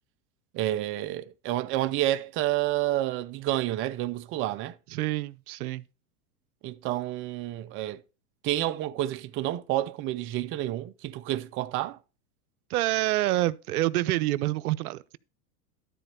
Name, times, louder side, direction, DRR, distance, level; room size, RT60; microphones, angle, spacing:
voice 1, 0.5-4.8 6.6-8.0 8.4-12.0, right 14 dB, 30° right, 0.5 m, -29 dB
voice 2, 4.9-5.8 12.7-15.2, right 16 dB, 70° right, 0.7 m, -27 dB
12.5 x 4.2 x 6.7 m
supercardioid pair, 125°, 46 cm